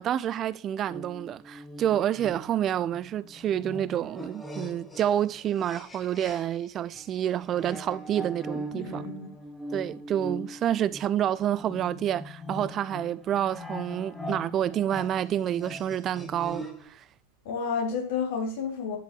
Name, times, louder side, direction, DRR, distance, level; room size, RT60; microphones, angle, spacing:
voice 1, 0.0-9.0 9.7-17.0, right 10 dB, 30° right, 0.4 m, -28 dB
sound 1, 0.9-6.6 6.9-16.9, equal, 10° left, 1.9 m, -41 dB
voice 2, 8.7-9.4 17.4-19.0, left 5 dB, 50° left, 3.9 m, -31 dB
11.0 x 10.0 x 3.4 m
figure-of-eight pair, 90°, 0 cm